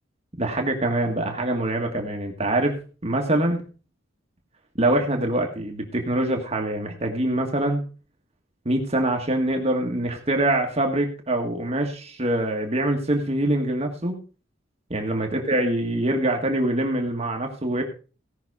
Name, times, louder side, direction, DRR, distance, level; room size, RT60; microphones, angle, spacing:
voice 1, 0.4-3.6 4.8-7.8 8.6-14.2 14.9-17.8, right 1 dB, 35° right, 2 dB, 1.5 m, -24 dB
17.0 x 5.9 x 4.8 m, 0.36 s
head